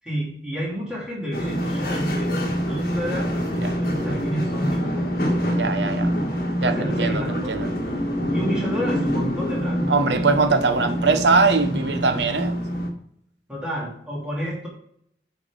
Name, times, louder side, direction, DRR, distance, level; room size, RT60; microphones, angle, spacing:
voice 1, 0.0-5.6 6.6-7.5 8.3-9.8 13.5-14.7, equal, 5° right, 2.9 m, -31 dB
sound 1, 1.3-12.9, equal, 55° left, 1.6 m, -25 dB
voice 2, 5.5-6.1 6.6-7.7 9.9-12.6, right 4 dB, 75° right, 0.9 m, -21 dB
8.6 x 4.7 x 5.1 m
head